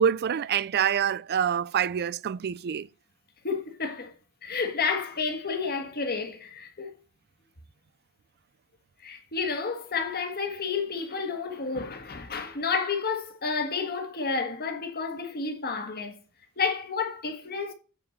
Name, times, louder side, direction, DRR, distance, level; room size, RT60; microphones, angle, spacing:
voice 1, 0.0-2.9, right 8 dB, 50° right, 0.4 m, -26 dB
voice 2, 3.4-4.1 4.4-6.9 9.0-16.2 16.6-17.7, left 5 dB, 45° left, 1.6 m, -30 dB
8.8 x 4.6 x 6.5 m
head